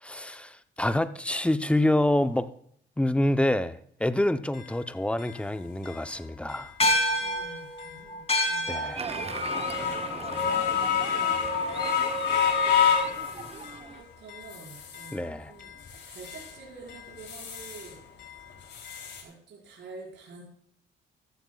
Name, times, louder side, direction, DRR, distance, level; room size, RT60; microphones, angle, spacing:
voice 1, 0.0-2.5 3.0-6.7 8.7-9.0 15.1-15.5, left 1 dB, 5° left, 12 dB, 0.7 m, -27 dB
sound 1, 4.5-4.6 5.2-5.3 5.8-5.9 6.5-6.7 7.1-7.3 7.8-7.9 8.5-8.6 9.1-13.8 14.3-15.2 15.6-16.5 16.9-17.9 18.2-19.2, left 7 dB, 60° left, 3.2 m, -29 dB
sound 2, 6.8-11.5, left 1 dB, 30° left, 2.8 m, -30 dB
voice 2, 7.2-9.2 12.6-12.9 13.9-18.0 19.2-20.4, right 4 dB, 65° right, -5 dB, 5.2 m, -48 dB
Applause, 9.0-14.0, right 5 dB, 30° right, 0.9 m, -39 dB
14.5 x 13.5 x 2.4 m, 0.66 s
cardioid pair, 90°, 20 cm